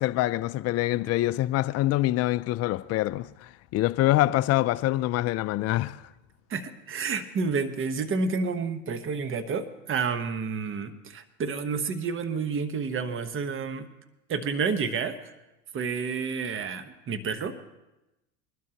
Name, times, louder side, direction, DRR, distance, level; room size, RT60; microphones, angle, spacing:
voice 1, 0.0-6.0, left 16 dB, 40° left, 0.5 m, -25 dB
voice 2, 6.5-13.9 14.3-15.2 15.7-17.5, right 5 dB, 30° right, 1.1 m, -30 dB
22.0 x 12.0 x 2.9 m
hypercardioid pair, 100°, 42 cm